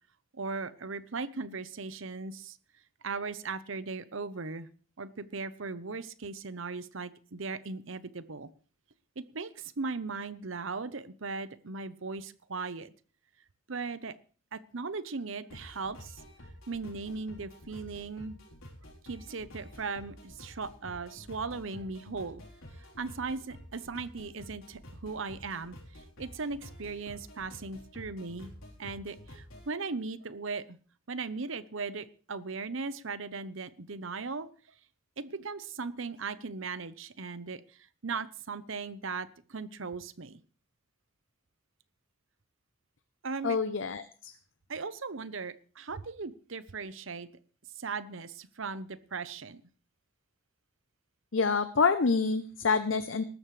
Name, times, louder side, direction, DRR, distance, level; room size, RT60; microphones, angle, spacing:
voice 1, 0.3-2.6 3.0-4.7 5.0-8.5 9.2-12.9 13.7-14.1 14.5-16.2 16.7-18.4 19.0-22.4 22.8-28.5 28.8-30.8 31.1-34.5 35.2-40.4 43.2-43.6 44.7-47.3 47.8-49.6, right 4 dB, 70° right, 14 dB, 0.9 m, -38 dB
sound 1, 15.5-29.7, equal, 85° left, 3.9 m, -50 dB
voice 2, 43.4-44.3 51.3-53.2, left 4 dB, 65° left, 11 dB, 0.7 m, -27 dB
19.0 x 13.5 x 3.3 m, 0.40 s
head